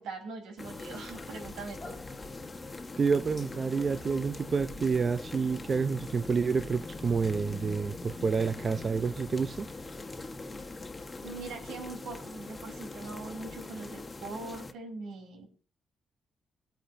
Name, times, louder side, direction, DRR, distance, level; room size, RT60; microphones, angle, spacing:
voice 1, 0.0-2.0 11.2-15.5, right 3 dB, 85° right, 3.9 m, -42 dB
sound 1, 0.6-14.7, left 3 dB, 25° left, 1.4 m, -42 dB
voice 2, 3.0-9.7, right 5 dB, 40° right, 0.6 m, -29 dB
25.5 x 9.0 x 2.7 m
cardioid pair, 90°, 0 cm